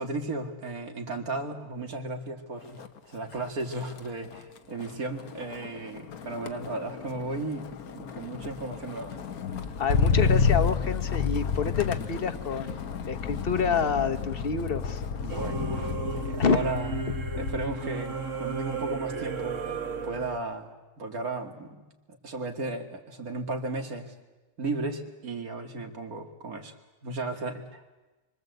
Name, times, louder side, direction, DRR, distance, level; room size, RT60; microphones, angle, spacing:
voice 1, 0.0-9.2 15.2-15.9 16.1-17.0 17.3-19.6 20.0-21.8 22.2-24.1 24.6-26.8 27.0-27.8, right 2 dB, 80° right, 4 dB, 2.8 m, -35 dB
Motor vehicle (road), 2.7-3.0 3.3-17.8 18.1-18.6, left 5 dB, 85° left, 1.7 m, -31 dB
voice 2, 9.8-15.0 16.4-16.7, left 6 dB, 40° left, 8 dB, 1.3 m, -28 dB
Singing / Musical instrument, 15.3-20.4, right 5 dB, 60° right, 2.0 m, -34 dB
28.0 x 24.0 x 8.1 m, 1.2 s
omnidirectional pair, 1.5 m